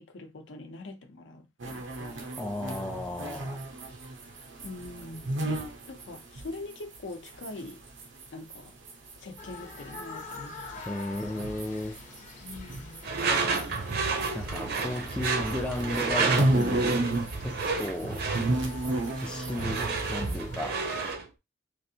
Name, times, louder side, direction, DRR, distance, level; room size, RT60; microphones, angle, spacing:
voice 1, 0.0-2.3 4.6-5.4 5.9-7.8 8.3-8.7 9.2-10.7 12.4-13.2, left 2 dB, 80° left, 0.7 m, -43 dB
sound 1, 1.6-8.6 8.8-14.8 15.1-17.4 17.6-20.4, right 1 dB, 90° right, 0.7 m, -32 dB
voice 2, 2.4-3.6 10.9-12.0 14.3-17.1 17.4-18.3 19.2-20.8, left 1 dB, 5° left, 0.3 m, -34 dB
sound 2, 9.4-21.2, left 2 dB, 45° left, 0.8 m, -46 dB
Door / Screech, 13.0-21.3, right 4 dB, 55° right, 0.6 m, -31 dB
3.2 x 2.5 x 2.7 m
head